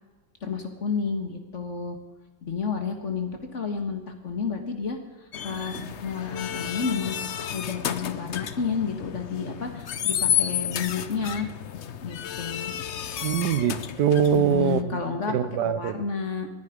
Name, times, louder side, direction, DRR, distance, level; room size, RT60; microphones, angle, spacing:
voice 1, 0.4-2.0 2.4-5.0 5.4-7.2 7.5-11.5 12.0-12.7 14.3-15.3 15.7-16.5, left 5 dB, 40° left, 6 dB, 1.8 m, -30 dB
sound 1, 5.3-14.8, left 9 dB, 75° left, 0.6 m, -31 dB
voice 2, 13.2-15.0 15.3-16.0, right 8 dB, 65° right, 14 dB, 1.3 m, -23 dB
20.5 x 11.0 x 5.2 m, 1.2 s
omnidirectional pair, 2.2 m